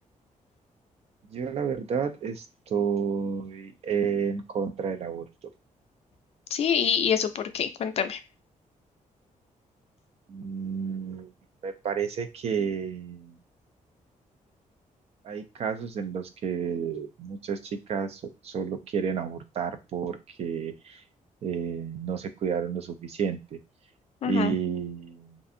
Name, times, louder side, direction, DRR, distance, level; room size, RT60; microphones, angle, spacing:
voice 1, 1.3-5.3 10.3-11.3 11.6-13.4 15.2-21.0 21.4-23.6 24.2-25.4, right 6 dB, 50° right, 9 dB, 0.4 m, -31 dB
voice 2, 6.5-8.2 24.2-24.6, left 8 dB, 50° left, 9 dB, 0.4 m, -26 dB
2.5 x 2.5 x 2.6 m, 0.29 s
wide cardioid pair, 155°, 14 cm